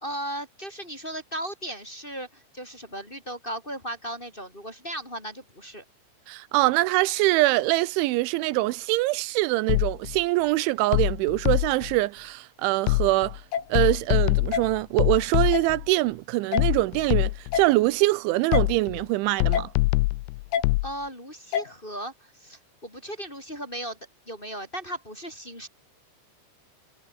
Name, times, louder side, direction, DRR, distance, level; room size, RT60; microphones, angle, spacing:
voice 1, 0.0-5.8 20.8-24.0 24.3-25.7, right 1 dB, 10° left, 3.4 m, -36 dB
voice 2, 6.3-13.4 13.7-19.7, right 19 dB, 85° right, 3.2 m, -24 dB
sound 1, 9.7-10.2 10.9-12.0 12.9-13.4 13.8-15.9 16.6-17.6 18.5-19.0 19.4-20.9, left 22 dB, 85° left, 2.6 m, -24 dB
sound 2, 13.5-13.6 14.5-14.6 15.5-15.7 16.5-16.6 17.5-17.7 18.5-18.6 19.5-19.7 20.5-20.6 21.5-21.7, left 8 dB, 65° left, 5.5 m, -26 dB
omnidirectional pair, 5.4 m